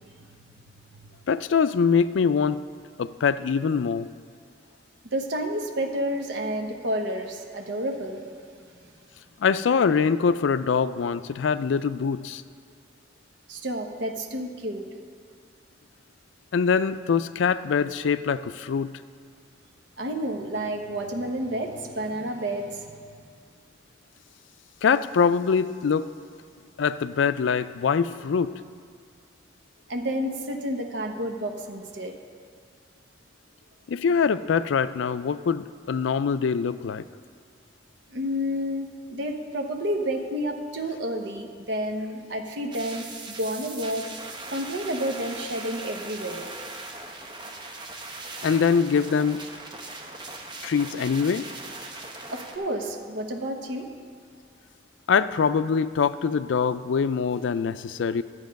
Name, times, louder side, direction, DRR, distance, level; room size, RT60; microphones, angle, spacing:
voice 1, 1.3-2.6 3.0-4.1 9.4-12.4 16.5-18.9 24.8-26.1 26.8-28.5 33.9-37.0 48.4-49.4 50.6-51.5 55.1-58.2, left 6 dB, 85° left, 14 dB, 0.4 m, -23 dB
voice 2, 5.1-8.2 13.5-14.8 20.0-23.0 29.9-32.1 38.1-44.0 44.5-46.5 52.3-53.9, equal, 75° right, 3 dB, 1.0 m, -30 dB
sound 1, 42.7-52.6, right 2 dB, 25° right, 0.9 m, -39 dB
11.5 x 8.0 x 5.2 m, 2.2 s
head